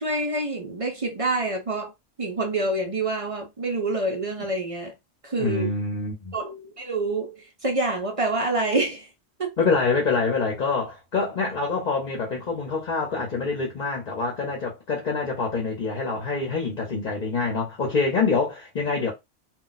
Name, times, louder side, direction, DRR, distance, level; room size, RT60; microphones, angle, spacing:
voice 1, 0.0-1.9 2.2-4.9 5.2-5.7 6.3-7.4 7.6-9.1 9.4-9.5, right 2 dB, 45° right, 0.5 m, -27 dB
voice 2, 5.4-6.4 9.6-19.1, left 4 dB, 45° left, 0.8 m, -26 dB
2.3 x 2.2 x 3.9 m
omnidirectional pair, 1.2 m